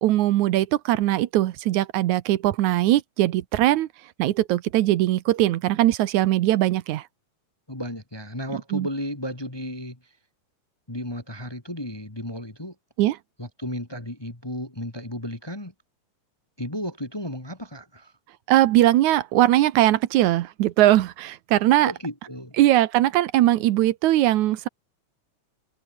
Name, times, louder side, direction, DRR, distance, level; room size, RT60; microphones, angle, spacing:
voice 1, 0.0-3.9 4.2-7.0 8.7-8.9 13.0-13.2 18.5-21.9 22.6-24.7, right 14 dB, 80° right, 2.3 m, -20 dB
voice 2, 7.7-10.1 10.9-12.7 13.4-15.7 16.6-18.1 21.9-22.5, equal, 10° left, 1.4 m, -34 dB
omnidirectional pair, 3.4 m